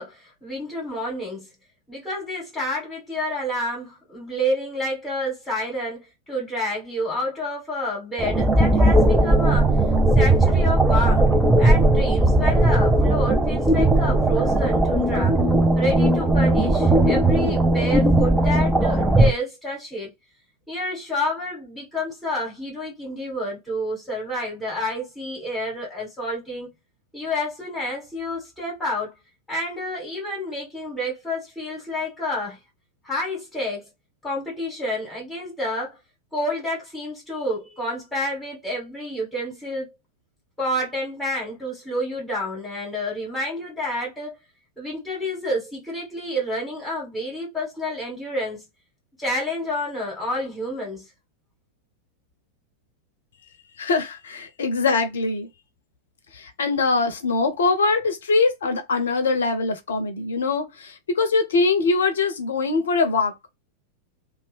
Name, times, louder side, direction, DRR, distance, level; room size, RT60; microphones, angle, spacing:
voice 1, 0.0-1.5 1.9-9.7 10.1-11.3 11.6-15.4 15.7-20.1 20.7-26.7 27.1-29.1 29.5-32.6 33.0-33.9 34.2-36.0 36.3-39.9 40.6-44.3 44.8-48.6 49.2-51.1, left 1 dB, 10° left, 1.5 m, -29 dB
sound 1, 8.2-19.3, right 1 dB, 10° right, 0.7 m, -18 dB
voice 2, 53.8-55.5 56.3-63.5, left 3 dB, 65° left, 0.7 m, -23 dB
2.7 x 2.2 x 3.4 m
figure-of-eight pair, 90°, 0 cm